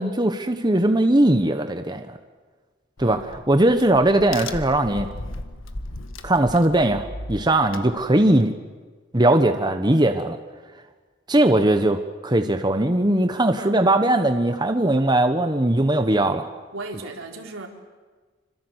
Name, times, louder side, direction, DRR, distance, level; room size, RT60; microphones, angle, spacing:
voice 1, 0.0-2.2 3.0-3.2 3.5-5.1 6.2-8.5 9.1-10.4 11.3-16.4, right 1 dB, 20° right, 7 dB, 1.3 m, -19 dB
Crack, 3.0-8.4, left 2 dB, 75° left, 1.7 m, -37 dB
voice 2, 16.7-17.7, right 2 dB, 85° right, 2 dB, 4.2 m, -36 dB
26.5 x 25.5 x 8.2 m, 1.4 s
head